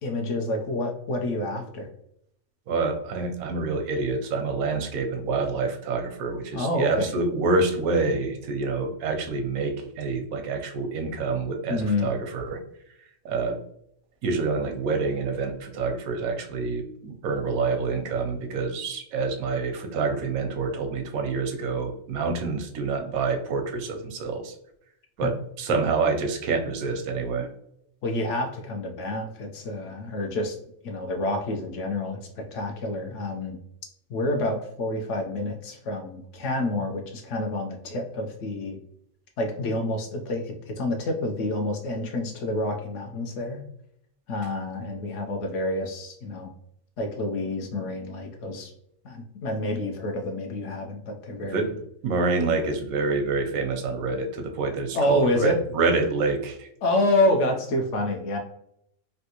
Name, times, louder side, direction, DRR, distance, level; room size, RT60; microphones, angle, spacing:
voice 1, 0.0-1.9 6.5-7.1 11.7-12.1 28.0-30.6 30.8-33.6 34.1-38.8 39.4-43.6 44.3-46.5 47.0-48.7 49.0-51.7 54.9-55.6 56.8-58.4, left 1 dB, 65° left, 4 dB, 0.9 m, -28 dB
voice 2, 2.7-12.6 13.2-13.6 14.2-24.5 25.2-27.5 51.5-51.8 52.0-56.7, right 4 dB, 85° right, 5 dB, 1.1 m, -27 dB
3.3 x 2.6 x 2.8 m, 0.73 s
omnidirectional pair, 1.5 m